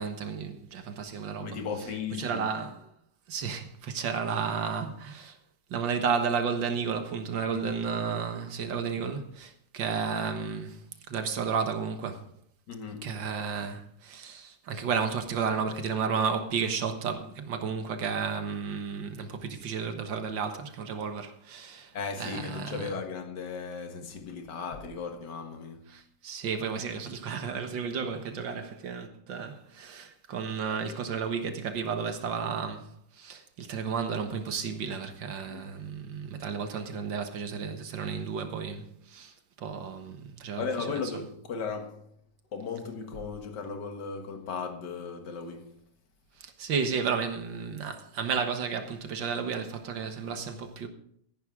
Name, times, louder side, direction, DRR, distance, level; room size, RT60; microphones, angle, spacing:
voice 1, 0.0-1.6 2.2-2.9 3.3-5.4 5.7-10.8 11.1-12.2 13.0-22.9 25.9-41.0 46.4-50.9, right 6 dB, 80° right, 2.0 m, -32 dB
voice 2, 1.4-2.5 7.5-7.7 12.7-13.2 21.9-26.0 35.5-35.7 40.6-42.1 42.5-45.8, left 5 dB, 65° left, 2.1 m, -36 dB
14.5 x 11.0 x 3.7 m
omnidirectional pair, 2.0 m